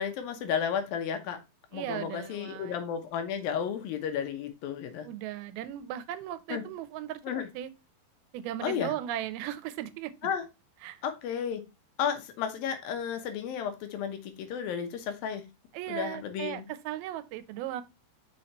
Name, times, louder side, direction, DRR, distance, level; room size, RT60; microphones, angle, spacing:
voice 1, 0.0-1.4 1.7-5.1 6.5-6.6 7.2-7.5 8.6-8.9 10.2-10.4 11.0-11.6 12.0-15.4 15.9-16.7, left 8 dB, 75° left, 2.7 m, -33 dB
voice 2, 1.7-2.8 5.0-7.2 7.5-7.7 8.3-10.1 10.8-11.0 15.7-17.8, right 12 dB, 90° right, 2.6 m, -37 dB
6.3 x 4.4 x 4.1 m
omnidirectional pair, 4.3 m